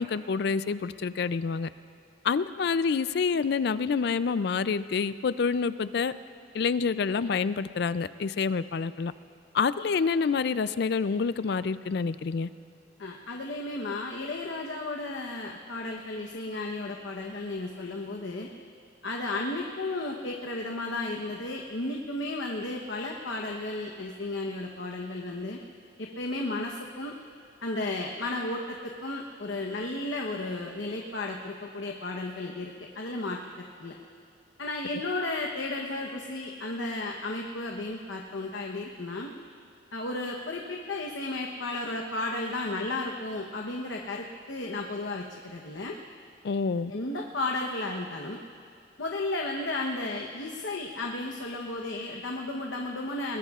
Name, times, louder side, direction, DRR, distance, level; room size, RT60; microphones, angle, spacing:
voice 1, 0.0-1.7 2.2-6.1 6.5-9.1 9.5-12.5 46.4-46.9, left 5 dB, 60° left, 15 dB, 0.4 m, -27 dB
voice 2, 13.0-18.5 19.0-25.6 26.0-27.1 27.6-33.9 34.6-39.3 39.9-46.0 46.9-48.4 49.0-53.4, left 2 dB, 80° left, 1 dB, 1.0 m, -34 dB
21.5 x 21.5 x 2.4 m, 2.2 s
head